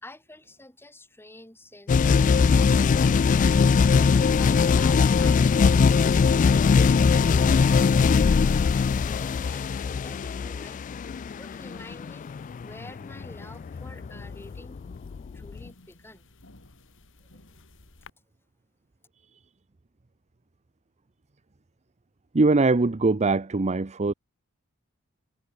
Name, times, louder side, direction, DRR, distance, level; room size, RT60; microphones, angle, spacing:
voice 1, 0.0-3.0 3.5-10.8 11.4-12.3 12.6-14.8 15.3-16.3, left 1 dB, 10° left, 3.5 m, -49 dB
sound 1, 1.9-15.6, left 5 dB, 35° left, 0.3 m, -21 dB
sound 2, 8.4-18.1, left 2 dB, 60° left, 2.8 m, -54 dB
voice 2, 22.3-24.1, right 3 dB, 30° right, 0.7 m, -22 dB
head